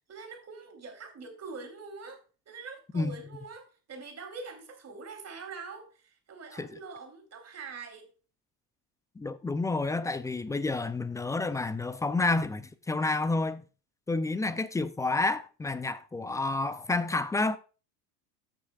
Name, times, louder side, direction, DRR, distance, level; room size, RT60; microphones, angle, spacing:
voice 1, 0.1-8.1, right 4 dB, 30° right, 3.2 m, -44 dB
voice 2, 9.2-13.6 14.1-17.6, left 3 dB, 10° left, 0.3 m, -29 dB
14.5 x 6.3 x 2.3 m
hypercardioid pair, 90°, 47 cm